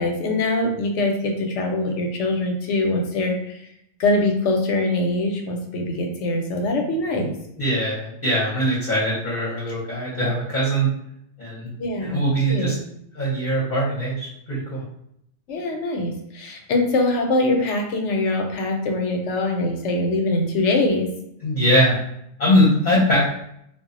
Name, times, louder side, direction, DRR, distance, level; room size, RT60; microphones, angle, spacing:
voice 1, 0.0-3.6 4.0-7.3 11.8-12.2 12.5-12.8 15.5-21.1, left 2 dB, 90° left, 3 dB, 0.9 m, -23 dB
voice 2, 7.6-10.9 11.4-11.7 12.0-12.7 13.1-14.8 21.4-22.0 22.4-23.3, equal, 45° left, -6 dB, 0.8 m, -21 dB
2.3 x 2.0 x 3.7 m, 0.74 s
omnidirectional pair, 1.2 m